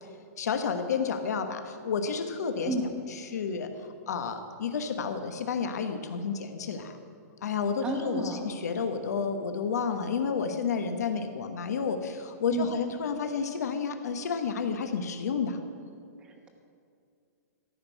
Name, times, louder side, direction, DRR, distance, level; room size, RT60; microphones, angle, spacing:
voice 1, 0.4-2.7 3.1-3.7 4.1-7.0 7.4-15.6, left 6 dB, 70° left, 7 dB, 1.3 m, -31 dB
voice 2, 7.8-8.4 12.5-12.7 16.2-16.5, right 2 dB, 10° right, 3 dB, 1.0 m, -31 dB
14.0 x 6.4 x 9.1 m, 2.3 s
hypercardioid pair, 175°, 9 cm